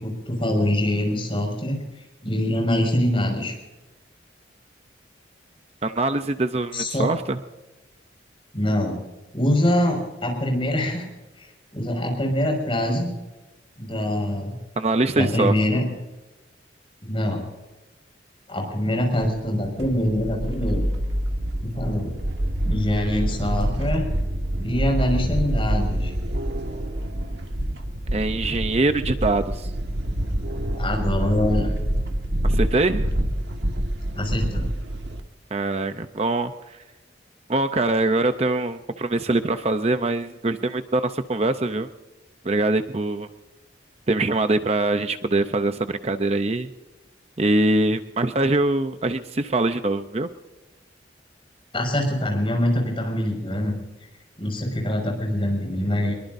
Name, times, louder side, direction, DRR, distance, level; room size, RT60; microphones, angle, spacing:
voice 1, 0.0-1.8 2.2-3.5 6.7-7.1 8.5-9.0 9.3-11.0 11.4-11.5 11.7-13.1 13.8-14.6 15.2-15.8 17.0-17.4 18.5-20.9 21.8-22.1 22.6-24.0 24.6-26.1 30.7-31.7 34.1-34.6 51.7-53.7 54.4-56.1, left 1 dB, 30° left, 1 dB, 5.9 m, -24 dB
voice 2, 5.8-7.4 14.8-15.5 28.1-29.7 32.4-33.1 35.5-36.8 37.5-41.9 42.4-43.3 44.1-46.7 47.4-50.3, right 2 dB, 35° right, 9 dB, 0.6 m, -23 dB
sound 1, 19.2-35.2, right 1 dB, 70° right, 1.6 m, -26 dB
23.5 x 22.5 x 2.7 m, 1.1 s
head